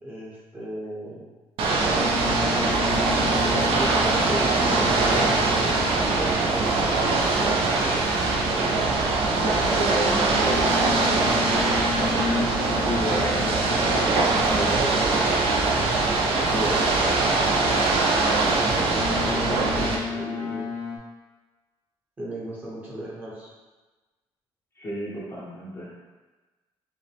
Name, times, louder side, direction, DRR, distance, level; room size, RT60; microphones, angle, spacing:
voice 1, 0.0-1.3 3.4-5.9 6.1-7.7 18.6-20.7 22.2-23.5, right 1 dB, 15° right, -6 dB, 0.9 m, -36 dB
Ocean / Boat Water vehicle, 1.6-20.0, right 3 dB, 65° right, 0.6 m, -22 dB
Boat Water vehicle, 2.0-6.5 10.5-15.0 19.0-21.0, left 6 dB, 75° left, 0.8 m, -33 dB
voice 2, 9.3-10.8 11.1-11.4 11.9-15.3 16.5-17.0 24.8-25.9, equal, 25° left, -5 dB, 0.7 m, -32 dB
5.1 x 2.1 x 3.3 m, 1.2 s
cardioid pair, 170°, 10 cm